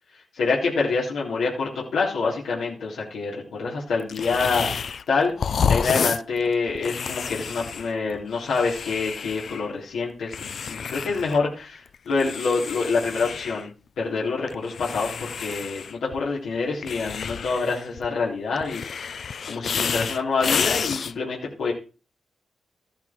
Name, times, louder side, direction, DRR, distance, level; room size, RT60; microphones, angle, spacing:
voice 1, 0.4-4.7 5.1-5.3 5.7-11.7 12.1-13.7 14.0-19.1 19.5-21.7, left 4 dB, 90° left, -4 dB, 3.7 m, -26 dB
sound 1, 4.1-5.1 5.4-9.7 10.3-11.4 11.8-13.7 14.5-16.2 16.8-18.1 18.6-21.1, left 6 dB, 60° left, 0.5 m, -29 dB
13.5 x 10.5 x 4.5 m, 0.35 s
cardioid pair, 80°, 0 cm